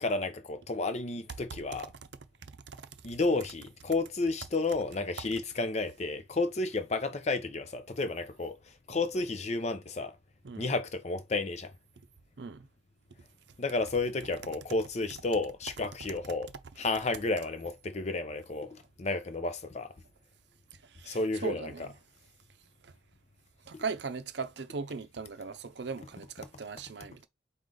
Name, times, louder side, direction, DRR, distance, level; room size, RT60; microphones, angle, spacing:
voice 1, 0.0-1.9 3.0-8.6 8.9-10.1 10.6-11.7 13.6-16.5 16.8-19.9 21.1-21.9, left 3 dB, 40° left, 0.6 m, -32 dB
voice 2, 20.9-21.9 22.8-22.9 23.7-27.3, right 5 dB, 70° right, 0.6 m, -39 dB
4.8 x 2.5 x 3.8 m
head